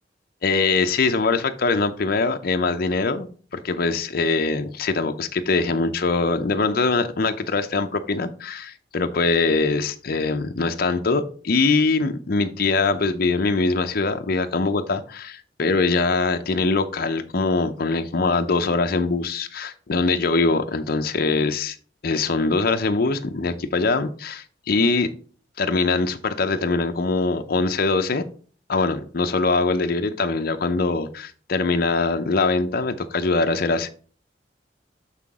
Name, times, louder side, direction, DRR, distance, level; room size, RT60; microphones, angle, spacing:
voice 1, 0.4-3.3 3.5-21.8 22.0-25.1 25.6-28.2 28.7-33.9, left 3 dB, 55° left, 0.6 m, -22 dB
6.7 x 5.8 x 3.6 m
head